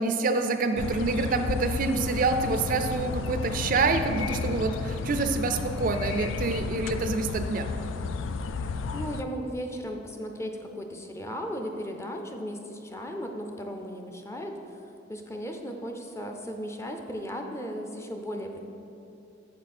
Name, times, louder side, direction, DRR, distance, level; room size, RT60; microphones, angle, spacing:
voice 1, 0.0-7.7, right 3 dB, 45° right, 7 dB, 0.4 m, -27 dB
sound 1, 0.8-9.2, left 4 dB, 80° left, 0.4 m, -32 dB
voice 2, 8.4-14.6 15.1-18.6, equal, 15° left, 3 dB, 0.6 m, -36 dB
8.6 x 7.0 x 4.3 m, 2.8 s
head